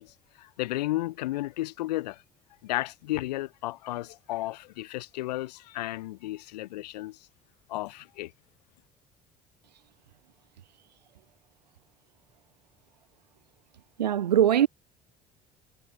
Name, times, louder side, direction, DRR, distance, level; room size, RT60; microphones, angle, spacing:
voice 1, 0.0-2.2 2.6-7.2 7.7-8.3, left 17 dB, 75° left, 2.6 m, -33 dB
voice 2, 14.0-14.7, right 10 dB, 85° right, 2.7 m, -21 dB
hypercardioid pair, 55°, 21 cm